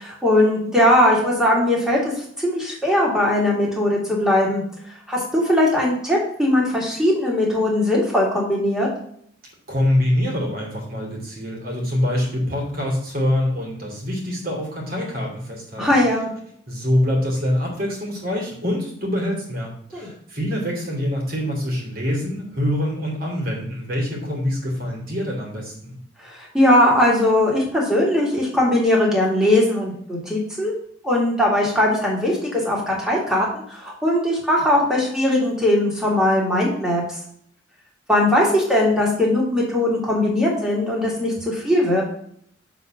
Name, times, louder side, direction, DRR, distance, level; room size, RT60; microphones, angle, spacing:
voice 1, 0.0-4.6 4.9-8.9 15.8-16.3 19.9-20.1 26.2-30.7 31.0-37.0 38.1-42.0, left 1 dB, 5° right, -4 dB, 2.3 m, -19 dB
voice 2, 9.7-15.9 16.7-26.0, left 1 dB, 50° right, -1 dB, 2.6 m, -25 dB
6.9 x 4.1 x 5.8 m, 0.66 s
head